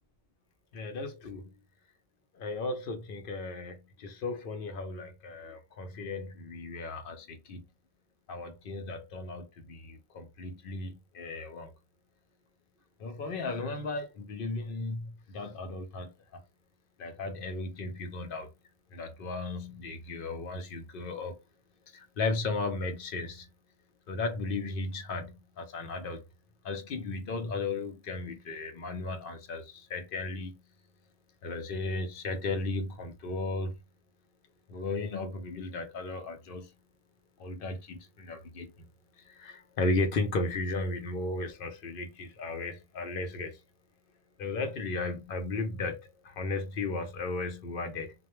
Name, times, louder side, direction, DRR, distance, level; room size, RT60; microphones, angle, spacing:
voice 1, 0.7-1.5 2.3-7.6 8.3-11.7 13.0-16.4 17.0-18.5 18.9-21.4 21.9-23.5 24.1-26.2 26.6-30.6 31.4-33.7 34.7-36.7 37.4-38.7 39.2-43.6 44.4-48.1, left 3 dB, 65° left, 0.7 m, -35 dB
2.2 x 2.1 x 2.9 m
omnidirectional pair, 1.1 m